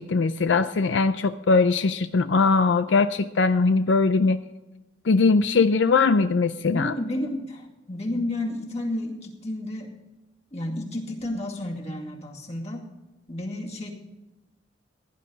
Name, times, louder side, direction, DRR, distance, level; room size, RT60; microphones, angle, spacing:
voice 1, 0.0-4.4 5.1-6.9, left 4 dB, 80° left, 11 dB, 0.5 m, -21 dB
voice 2, 6.7-9.9 10.5-12.8 13.3-13.9, left 1 dB, 35° left, 0 dB, 2.2 m, -31 dB
16.5 x 10.5 x 4.0 m, 1.1 s
head